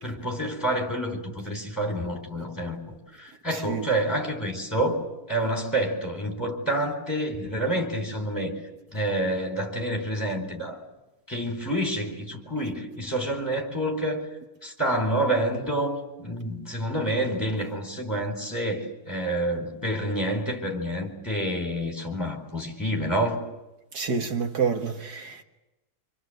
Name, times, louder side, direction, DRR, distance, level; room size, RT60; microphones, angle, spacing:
voice 1, 0.0-8.5 8.9-10.8 11.3-14.3 14.6-23.4, right 1 dB, 10° left, 4.2 m, -28 dB
voice 2, 3.5-3.8 23.9-25.4, right 5 dB, 75° right, 2.0 m, -28 dB
26.5 x 25.5 x 7.9 m
omnidirectional pair, 1.7 m